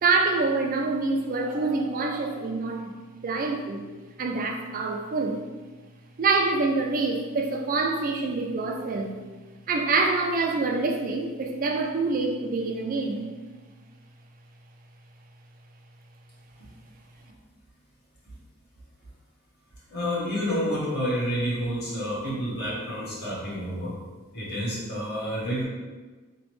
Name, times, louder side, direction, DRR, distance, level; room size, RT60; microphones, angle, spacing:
voice 1, 0.0-3.8 4.2-5.4 6.2-9.2 9.7-13.3, right 3 dB, 40° right, 2 dB, 0.4 m, -26 dB
voice 2, 19.9-23.9 24.3-25.6, equal, 50° left, -6 dB, 1.3 m, -29 dB
4.0 x 3.0 x 3.1 m, 1.3 s
head